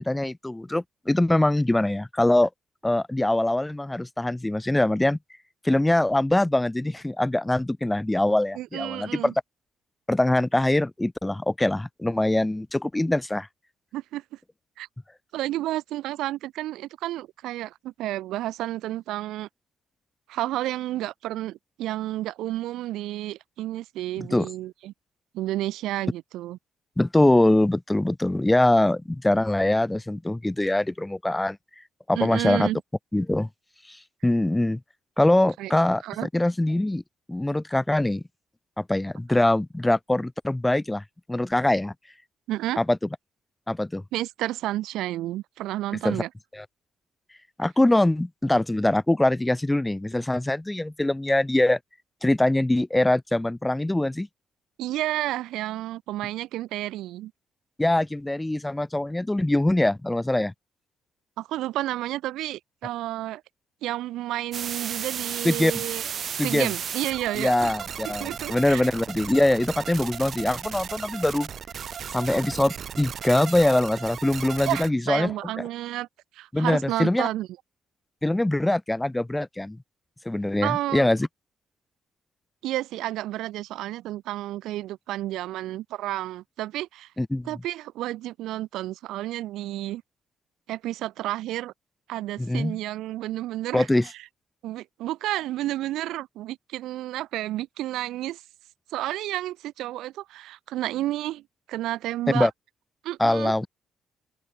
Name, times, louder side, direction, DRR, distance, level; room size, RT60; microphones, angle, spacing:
voice 1, 0.0-2.5 2.8-5.2 5.6-9.3 10.1-13.5 24.2-24.5 27.0-31.6 32.1-32.7 33.1-33.5 33.9-34.8 35.2-37.0 37.3-38.2 38.8-41.0 41.3-41.9 42.8-43.0 43.7-44.0 46.0-46.2 46.5-46.6 47.6-51.8 52.2-54.3 57.8-60.5 65.4-65.7 66.4-66.7 67.3-71.5 72.1-75.3 76.5-77.3 78.2-79.8 80.2-81.3 87.2-87.5 92.4-92.8 93.7-94.1 102.3-102.5 103.2-103.7, left 1 dB, 10° left, 0.8 m, -23 dB
voice 2, 8.5-9.3 13.9-14.2 14.8-14.9 15.3-19.5 20.3-24.9 25.3-26.6 32.1-32.8 35.6-35.7 36.0-36.3 42.5-42.8 44.1-46.3 54.8-57.3 61.4-63.4 63.8-66.1 66.4-67.7 68.2-68.8 74.6-76.1 76.3-77.5 80.6-81.1 82.6-87.1 87.4-90.0 90.7-91.7 92.1-93.9 94.6-98.4 98.9-101.4 101.7-102.5 103.0-103.5, right 15 dB, 90° right, 3.3 m, -31 dB
sound 1, 64.5-74.9, right 8 dB, 55° right, 2.4 m, -35 dB
open air
cardioid pair, 90°, 0 cm